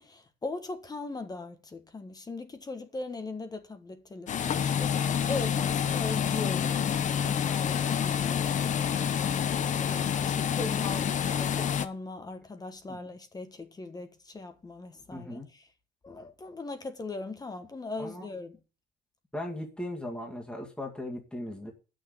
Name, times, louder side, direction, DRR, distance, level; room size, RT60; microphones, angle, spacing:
voice 1, 0.0-8.7 9.2-15.6 16.0-18.6, left 3 dB, 20° left, 1.6 m, -39 dB
sound 1, 4.3-11.9, left 8 dB, 45° left, 0.9 m, -28 dB
voice 2, 15.1-15.5 18.0-18.3 19.3-21.7, left 1 dB, 5° left, 2.2 m, -38 dB
9.0 x 6.5 x 8.6 m
cardioid pair, 110°, 17 cm